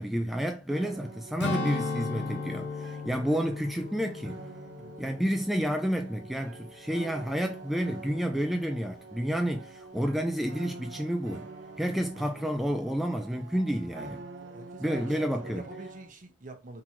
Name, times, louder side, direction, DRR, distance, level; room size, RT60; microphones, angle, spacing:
voice 1, 0.0-4.5 5.0-11.5 11.8-14.2 14.8-15.7, equal, ahead, 0.3 m, -30 dB
sound 1, 0.7-16.1, right 3 dB, 75° right, 0.6 m, -46 dB
Strum, 1.4-6.1 6.5-6.7, left 4 dB, 65° left, 0.7 m, -36 dB
voice 2, 4.8-5.2 14.4-16.8, right 2 dB, 45° right, 0.9 m, -47 dB
4.4 x 3.7 x 2.9 m
head